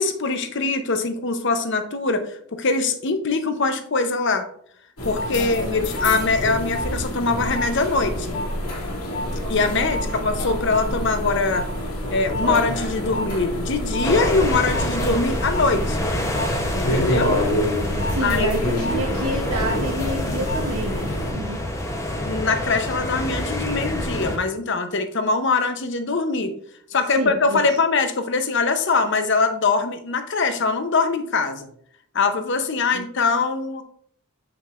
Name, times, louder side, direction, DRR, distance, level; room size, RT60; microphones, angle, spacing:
voice 1, 0.0-2.2 2.5-4.5 5.0-8.3 9.5-11.6 12.1-16.1 16.7-17.3 18.2-18.6 22.1-26.5 26.9-31.7 32.1-33.8, left 4 dB, 55° left, 8 dB, 0.7 m, -22 dB
sound 1, 5.0-21.3, left 1 dB, 85° left, 2.4 m, -27 dB
voice 2, 5.3-5.9 17.1-17.4 18.0-21.6 27.2-27.6 32.9-33.1, right 1 dB, 85° right, -2 dB, 1.0 m, -29 dB
sound 2, 14.0-24.4, left 1 dB, 15° left, 0.8 m, -27 dB
7.5 x 6.0 x 2.5 m, 0.64 s
head